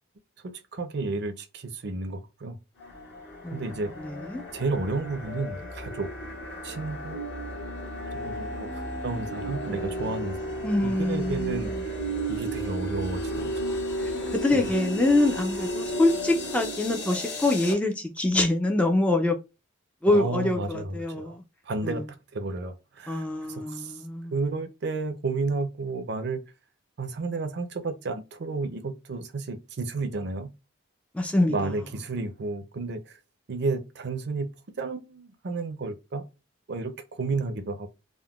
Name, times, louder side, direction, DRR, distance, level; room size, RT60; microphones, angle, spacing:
voice 1, 0.4-2.6 3.5-3.9 4.5-6.1 6.6-7.2 8.0-12.0 12.3-13.7 14.5-14.7 20.1-21.4 21.7-22.0 22.3-24.0 24.3-26.4 27.0-30.5 31.5-33.2 33.5-34.5 34.8-36.2 36.7-37.9, right 3 dB, 60° right, 0.5 m, -32 dB
sound 1, 2.8-17.7, equal, 60° left, 1.0 m, -33 dB
voice 2, 3.4-4.4 10.6-11.7 14.3-19.4 20.0-21.4 21.8-22.0 23.1-24.3 31.1-31.5, left 2 dB, 5° left, 0.3 m, -25 dB
3.6 x 2.1 x 2.3 m
head